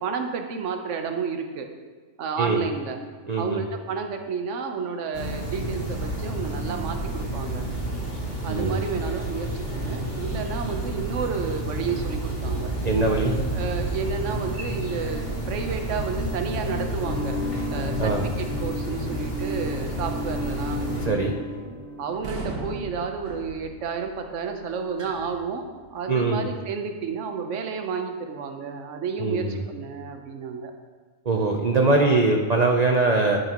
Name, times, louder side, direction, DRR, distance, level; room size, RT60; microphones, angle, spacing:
voice 1, 0.0-1.7 2.2-3.0 3.4-7.7 8.4-12.7 13.5-17.4 17.7-21.4 22.0-25.7 25.9-30.7 32.0-32.2, right 5 dB, 60° right, 5 dB, 1.1 m, -31 dB
voice 2, 3.3-3.6 8.5-8.9 12.8-13.4 18.0-18.2 21.0-21.3 26.1-26.5 29.2-29.6 31.3-33.4, right 3 dB, 45° right, 1 dB, 0.5 m, -22 dB
sound 1, 5.1-21.1, right 1 dB, 30° left, 1.8 m, -30 dB
sound 2, 17.0-22.2, left 1 dB, 70° left, 1.2 m, -33 dB
sound 3, 22.1-26.0, right 2 dB, 90° right, 1.8 m, -38 dB
11.0 x 9.1 x 3.0 m, 1.4 s
omnidirectional pair, 1.5 m